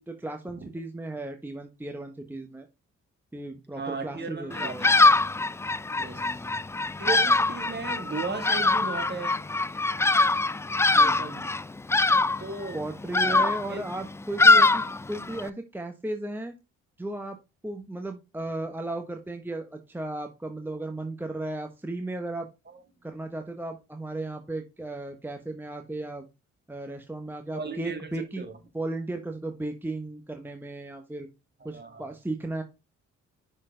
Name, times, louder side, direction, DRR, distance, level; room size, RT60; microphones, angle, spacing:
voice 1, 0.0-2.7 3.3-4.9 6.2-6.6 10.9-11.4 12.7-16.5 17.0-17.4 17.6-22.5 23.0-26.3 26.7-28.5 28.7-31.3 31.6-32.6, right 2 dB, 5° right, 1.0 m, -35 dB
voice 2, 3.8-5.1 6.0-6.4 7.0-9.5 10.9-11.4 12.4-12.8 13.2-13.8 27.5-28.0 28.4-28.5 31.6-32.1, right 4 dB, 35° right, 2.1 m, -36 dB
Bird vocalization bird call bird song, 4.5-15.5, left 3 dB, 10° left, 0.3 m, -23 dB
6.1 x 4.5 x 3.7 m
hypercardioid pair, 50°, 31 cm